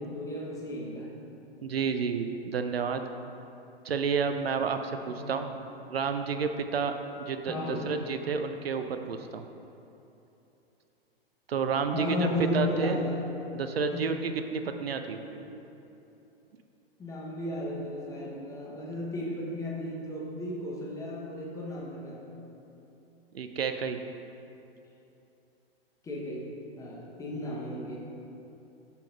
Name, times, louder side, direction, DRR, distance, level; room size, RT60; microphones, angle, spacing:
voice 1, 0.1-1.1 5.1-5.5 7.5-8.0 11.9-13.2 13.9-14.2 15.2-15.6 17.0-22.4 26.0-28.0, left 1 dB, 10° left, -3 dB, 0.7 m, -34 dB
voice 2, 1.6-3.0 3.8-5.5 5.9-9.5 11.5-12.3 12.5-13.0 13.6-15.2 23.3-24.0, right 5 dB, 75° right, 7 dB, 0.5 m, -30 dB
5.6 x 3.9 x 5.0 m, 2.9 s
figure-of-eight pair, 105°, 31 cm